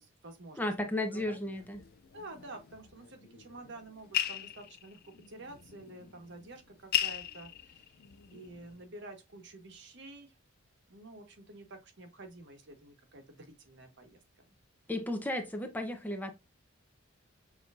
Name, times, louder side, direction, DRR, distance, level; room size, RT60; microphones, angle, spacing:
voice 1, 0.0-0.6 1.1-1.4 2.1-8.0 8.3-10.4 10.9-14.2, right 2 dB, 55° right, 1.2 m, -49 dB
voice 2, 0.6-1.8 14.9-16.3, left 1 dB, 10° left, 0.7 m, -34 dB
sound 1, 1.0-8.8, left 11 dB, 45° left, 0.3 m, -39 dB
6.5 x 3.0 x 2.5 m
head